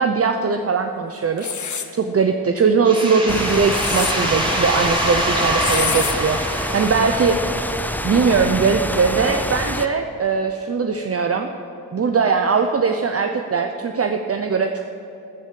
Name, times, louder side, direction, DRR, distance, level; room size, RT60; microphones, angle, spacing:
voice 1, 0.0-1.5 1.9-7.4 8.0-11.5 11.9-14.8, right 5 dB, 40° right, 5 dB, 0.8 m, -20 dB
sound 1, 1.4-1.9 3.5-4.1 5.6-6.2, left 7 dB, 55° left, 1.1 m, -26 dB
sound 2, 2.9-8.4, right 1 dB, 15° right, 3.0 m, -25 dB
sound 3, 3.3-9.9, left 1 dB, 5° left, 0.6 m, -27 dB
13.5 x 10.5 x 7.6 m, 2.8 s
cardioid pair, 85°, 35 cm